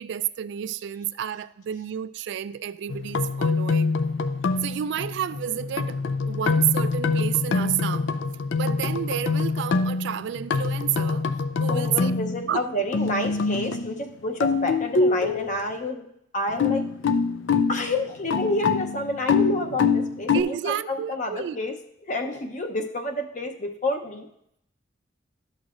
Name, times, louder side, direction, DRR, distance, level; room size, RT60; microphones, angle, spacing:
voice 1, 0.0-3.9 4.6-6.0 6.3-8.2 8.6-11.3 11.6-12.1 12.5-12.6 20.3-21.6, right 10 dB, 65° right, 0.3 m, -30 dB
sound 1, 2.9-12.5 12.9-14.1 14.4-15.6 16.5-20.4, left 4 dB, 75° left, 0.4 m, -25 dB
voice 2, 11.7-16.1 16.3-16.8 17.7-21.7 22.1-24.3, left 1 dB, 45° left, 0.8 m, -29 dB
12.0 x 6.3 x 2.5 m
head